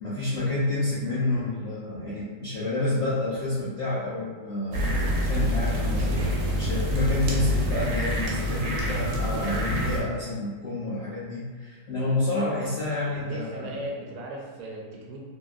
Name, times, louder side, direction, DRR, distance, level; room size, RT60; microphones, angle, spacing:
voice 1, 0.0-13.8, left 2 dB, 75° left, -9 dB, 0.6 m, -29 dB
sound 1, 4.7-10.0, equal, 85° right, 1.3 m, -26 dB
voice 2, 13.3-15.2, right 1 dB, 70° right, -2 dB, 1.0 m, -37 dB
2.8 x 2.6 x 2.3 m, 1.5 s
omnidirectional pair, 1.9 m